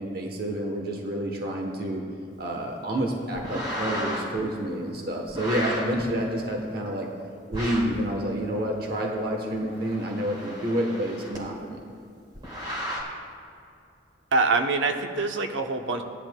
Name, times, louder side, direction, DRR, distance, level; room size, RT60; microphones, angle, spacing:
voice 1, 0.0-2.0 2.4-7.1 7.5-11.8, right 1 dB, 55° right, 1 dB, 1.0 m, -29 dB
sound 1, 3.3-4.4 5.3-6.0 7.5-8.0 9.5-11.4 12.3-13.0, equal, 25° right, 2.2 m, -34 dB
voice 2, 14.3-16.0, right 3 dB, 90° right, 5 dB, 0.8 m, -24 dB
17.0 x 10.5 x 2.2 m, 2.5 s
head